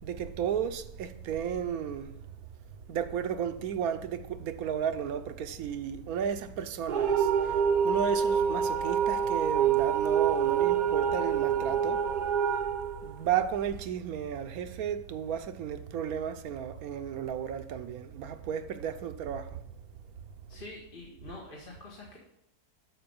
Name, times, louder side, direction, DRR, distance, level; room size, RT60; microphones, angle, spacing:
voice 1, 0.0-2.1 2.9-12.0 13.0-19.6, right 8 dB, 75° right, 1.1 m, -33 dB
sound 1, 6.9-13.8, right 7 dB, 50° right, 0.5 m, -26 dB
voice 2, 20.5-22.2, left 2 dB, 35° left, 1.5 m, -46 dB
12.5 x 4.8 x 5.2 m
omnidirectional pair, 1.6 m